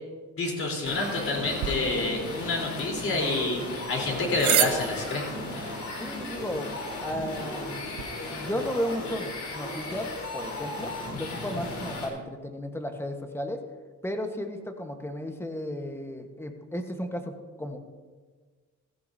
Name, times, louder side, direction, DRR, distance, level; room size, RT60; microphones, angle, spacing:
voice 1, 0.4-3.6 3.9-5.3, left 2 dB, 45° left, -1 dB, 3.7 m, -28 dB
sound 1, 0.8-12.1, left 2 dB, 70° left, 3.6 m, -36 dB
sound 2, 1.6-8.1, right 11 dB, 75° right, 0.8 m, -34 dB
voice 2, 6.0-6.7 7.0-7.8 8.2-10.9 11.2-13.6 14.0-17.8, equal, 10° left, 5 dB, 1.3 m, -34 dB
15.5 x 14.5 x 2.7 m, 1.4 s
cardioid pair, 105°, 30 cm